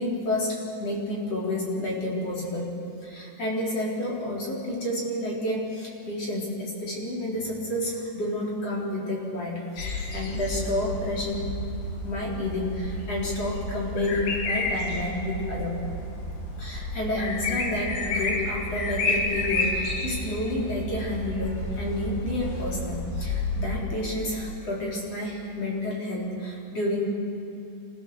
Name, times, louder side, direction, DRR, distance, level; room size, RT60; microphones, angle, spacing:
voice 1, 0.0-2.7 3.0-11.5 12.0-15.8 16.6-27.1, left 1 dB, 40° left, -4 dB, 4.5 m, -30 dB
sound 1, 9.8-23.8, left 1 dB, 80° left, 4.5 m, -31 dB
28.0 x 15.0 x 6.9 m, 2.7 s
omnidirectional pair, 4.8 m